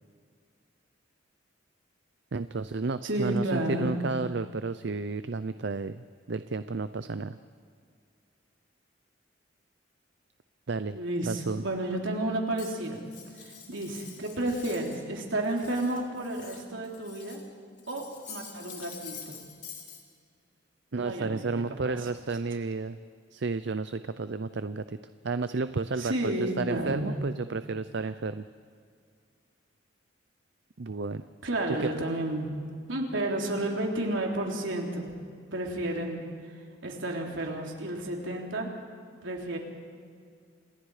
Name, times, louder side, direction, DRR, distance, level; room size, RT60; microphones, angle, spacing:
voice 1, 2.3-7.4 10.7-11.0 11.2-11.6 20.9-23.0 23.3-25.0 25.2-28.5 30.8-31.2 31.7-31.9, right 3 dB, 60° right, 12 dB, 0.6 m, -32 dB
voice 2, 3.0-4.0 10.9-13.0 13.4-17.4 17.9-19.4 20.9-22.0 26.0-27.2 31.4-32.5 32.9-35.1 35.5-36.2 36.8-38.7 39.2-39.6, right 1 dB, 75° right, 0 dB, 3.7 m, -31 dB
Cutlery silverware, 12.6-15.0 15.3-17.5 17.8-20.0, left 7 dB, 40° left, 3.3 m, -46 dB
30.0 x 27.0 x 5.0 m, 2.1 s
head